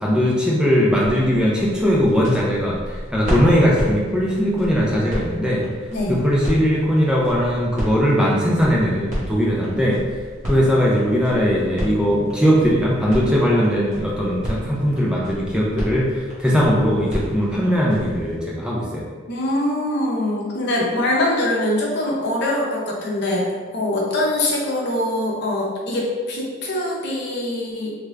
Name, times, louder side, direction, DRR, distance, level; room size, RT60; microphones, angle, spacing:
voice 1, 0.0-5.6 6.1-10.0 10.4-19.1, equal, 5° right, -5 dB, 0.4 m, -19 dB
sound 1, 0.8-18.4, equal, 40° right, 1.1 m, -32 dB
voice 2, 19.3-27.9, left 1 dB, 55° left, -3 dB, 0.7 m, -23 dB
3.2 x 2.4 x 3.2 m, 1.5 s
head